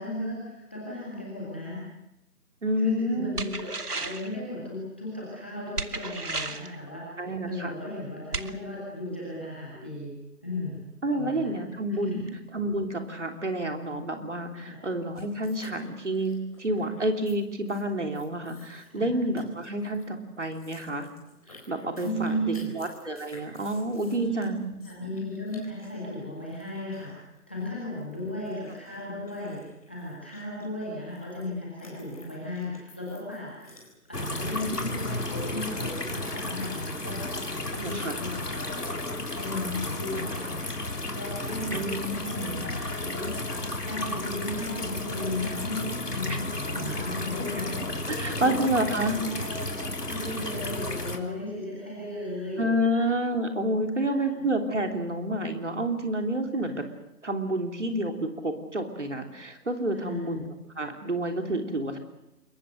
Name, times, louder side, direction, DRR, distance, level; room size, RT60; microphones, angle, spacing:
voice 1, 0.0-1.8 2.8-10.1 10.4-10.8 11.1-12.3 14.6-14.8 18.9-19.1 22.0-22.7 24.1-24.4 24.9-27.1 27.5-33.5 34.1-41.7 42.4-52.6 52.9-53.0 54.0-54.3 56.5-56.7 60.0-60.5, left 1 dB, 5° left, -6 dB, 1.8 m, -36 dB
voice 2, 2.6-3.5 7.2-7.7 11.0-12.2 12.5-21.1 21.7-24.8 37.8-38.1 41.7-42.6 46.3-46.4 47.4-47.5 48.1-49.2 52.6-56.7 57.2-60.4 60.8-62.0, right 1 dB, 50° right, 4 dB, 3.4 m, -29 dB
sound 1, 3.4-4.3 5.8-6.8 8.3-8.5, right 3 dB, 75° right, 1.8 m, -33 dB
sound 2, 15.1-17.3 17.7-17.8 18.1-19.1 19.3-20.1 20.4-31.4 31.8-34.2, left 2 dB, 25° left, 4.1 m, -53 dB
sound 3, 34.1-51.2, left 2 dB, 80° left, 3.4 m, -33 dB
28.0 x 22.5 x 6.6 m, 0.92 s
figure-of-eight pair, 170°, 47 cm